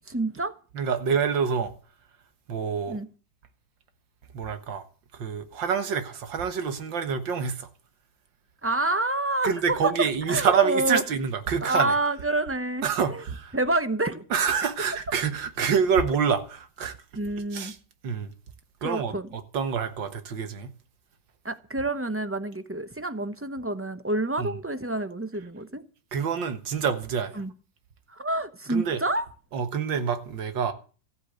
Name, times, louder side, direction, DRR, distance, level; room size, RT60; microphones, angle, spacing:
voice 1, 0.1-0.5 2.9-3.1 8.6-11.0 11.6-13.2 13.5-14.2 17.2-17.7 18.8-19.3 21.4-25.8 27.4-27.5 28.1-29.3, right 2 dB, 15° right, 0.4 m, -28 dB
voice 2, 0.7-1.7 2.5-3.0 4.3-4.8 5.1-7.7 9.4-12.1 12.8-13.6 14.3-17.0 17.5-17.8 18.0-18.3 18.8-20.7 24.4-24.5 26.1-27.4 28.7-29.0 29.5-30.7, right 6 dB, 85° right, 2.2 m, -27 dB
14.0 x 8.3 x 7.9 m
omnidirectional pair, 2.0 m